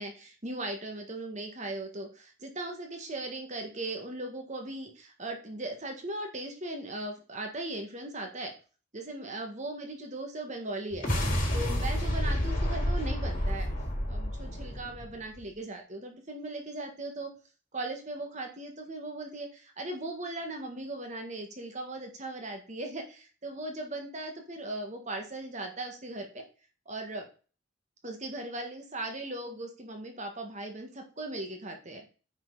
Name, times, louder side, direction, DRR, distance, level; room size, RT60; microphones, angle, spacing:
voice 1, 0.0-8.5 8.9-11.1 11.5-13.7 14.1-17.3 17.7-26.4 26.9-27.3 28.0-32.0, right 2 dB, 40° right, 3 dB, 1.9 m, -38 dB
sound 1, 10.9-15.4, equal, 45° left, 4.2 m, -30 dB
9.9 x 6.1 x 4.1 m, 0.36 s
head